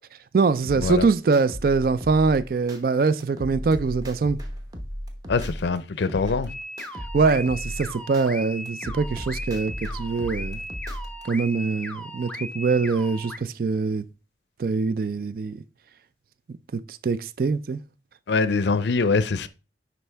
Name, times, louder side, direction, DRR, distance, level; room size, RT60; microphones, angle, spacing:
voice 1, 0.3-4.4 7.1-10.6 11.2-14.0 14.6-15.6 16.7-17.8, right 4 dB, 50° right, 0.3 m, -23 dB
sound 1, 0.6-2.8 3.2-5.8 6.1-8.3 8.7-11.2, equal, 20° right, 0.9 m, -35 dB
voice 2, 5.3-6.5 18.3-19.5, left 4 dB, 75° left, 0.5 m, -23 dB
sound 2, 6.5-13.4, left 1 dB, 5° left, 0.5 m, -37 dB
9.9 x 4.1 x 3.4 m
head